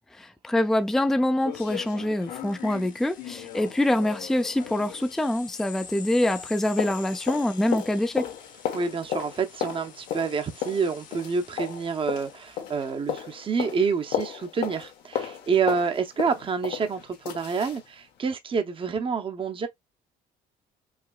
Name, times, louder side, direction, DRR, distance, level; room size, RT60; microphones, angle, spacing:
voice 1, 0.1-8.3, left 1 dB, ahead, 0.4 m, -25 dB
sound 1, 0.6-0.7 1.0-1.1 1.4-6.0 6.2-17.8 18.2-18.3, left 9 dB, 90° left, 1.3 m, -35 dB
sound 2, 2.2-13.3, left 7 dB, 50° left, 1.0 m, -47 dB
voice 2, 8.7-19.7, right 5 dB, 30° right, 0.7 m, -28 dB
4.9 x 2.8 x 2.3 m
cardioid pair, 110°, 17 cm